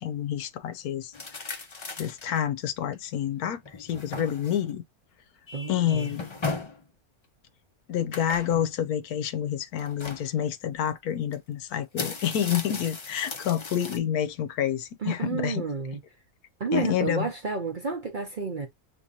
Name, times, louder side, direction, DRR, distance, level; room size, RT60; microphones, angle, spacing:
voice 1, 0.0-1.6 1.9-4.8 5.7-6.3 7.9-15.6 16.7-17.3, left 10 dB, 90° left, 1.1 m, -28 dB
sound 1, 1.1-2.4 2.9-3.0 3.6-4.7 5.9-6.8 8.1-8.7 9.8-10.3 11.3-11.4 11.8-14.0, left 3 dB, 45° left, 0.3 m, -37 dB
Vehicle horn car horn honking, 5.5-6.3, left 2 dB, 20° left, 0.8 m, -46 dB
voice 2, 5.5-6.1 15.0-16.0 16.6-18.7, right 4 dB, 45° right, 0.7 m, -31 dB
6.0 x 2.8 x 2.7 m
omnidirectional pair, 1.6 m